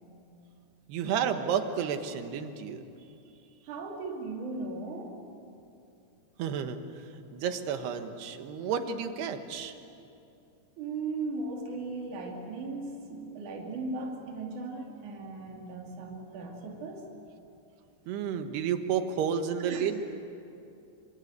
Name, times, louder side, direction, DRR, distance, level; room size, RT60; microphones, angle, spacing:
voice 1, 0.9-2.8 6.4-6.8 7.3-9.8 18.1-20.0, right 7 dB, 90° right, 7 dB, 3.5 m, -31 dB
voice 2, 3.6-5.5 10.8-17.0 19.6-19.9, right 3 dB, 55° right, 0 dB, 4.0 m, -37 dB
27.5 x 25.5 x 8.1 m, 2.7 s
omnidirectional pair, 4.5 m